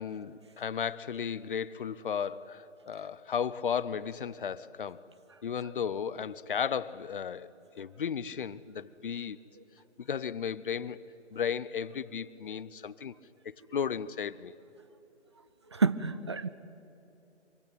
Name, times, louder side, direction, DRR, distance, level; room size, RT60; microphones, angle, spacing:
voice 1, 0.0-5.0 5.4-7.5 7.8-9.4 10.0-11.0 11.3-13.1 13.4-14.5, left 7 dB, 45° left, 0.8 m, -34 dB
voice 2, 15.7-16.5, right 5 dB, 25° right, 0.5 m, -28 dB
25.0 x 24.0 x 9.1 m
figure-of-eight pair, 155°, 36 cm